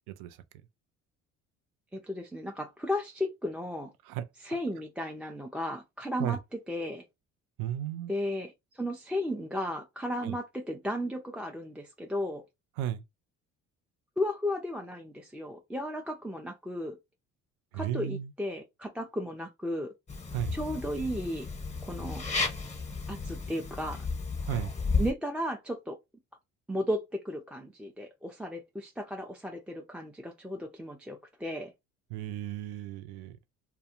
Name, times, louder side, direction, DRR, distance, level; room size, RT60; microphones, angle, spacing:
voice 1, 0.1-0.4 4.1-4.2 6.2-6.4 7.6-8.1 10.2-10.4 12.8-13.0 17.7-18.3 20.3-20.5 24.4-24.7 32.1-33.4, right 11 dB, 70° right, 0.5 m, -34 dB
voice 2, 1.9-3.9 4.4-7.0 8.1-12.4 14.2-17.0 17.7-19.9 20.5-21.5 21.8-22.2 23.1-24.0 25.0-26.0 26.7-31.7, left 1 dB, 5° right, 0.3 m, -34 dB
sound 1, 20.1-25.1, left 4 dB, 15° left, 1.0 m, -33 dB
2.3 x 2.2 x 2.8 m
hypercardioid pair, 60°, 38 cm